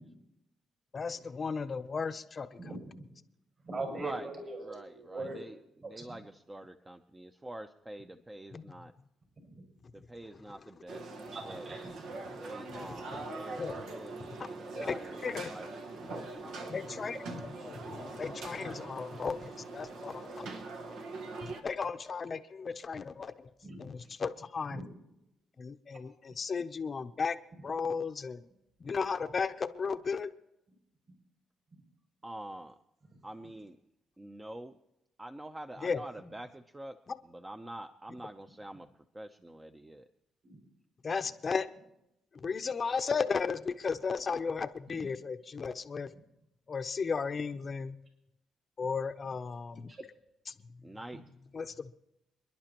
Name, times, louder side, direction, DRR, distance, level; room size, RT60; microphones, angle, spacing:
voice 1, 0.9-2.6 8.5-8.6 12.7-13.3 13.6-13.8 14.4-14.5 14.8-15.5 16.0-20.5 21.4-23.5 23.8-24.8 25.6-27.4 27.6-28.4 28.8-30.3 35.8-36.3 37.1-37.2 41.0-41.7 42.3-46.1 46.7-48.0 48.8-49.9 50.5-50.6 51.5-51.9, left 5 dB, 40° left, 8 dB, 0.7 m, -35 dB
voice 2, 2.6-3.0 3.6-5.4 5.8-6.2 9.5-9.6 11.3-11.9 23.6-23.8 24.7-24.8 40.4-40.6 44.9-45.0 51.1-51.2, right 2 dB, 45° right, 1 dB, 6.6 m, -41 dB
voice 3, 4.0-4.3 4.6-5.6 5.8-8.9 9.9-11.1 11.5-11.7 12.4-15.2 15.4-15.7 15.9-16.7 32.2-32.7 33.2-33.8 34.2-34.7 35.2-36.9 37.4-38.9 39.1-40.0 50.8-51.2, right 1 dB, 15° right, 6 dB, 0.7 m, -46 dB
sound 1, 10.9-21.6, right 3 dB, 80° right, 1.4 m, -42 dB
28.0 x 11.0 x 3.0 m, 0.85 s
cardioid pair, 90°, 0 cm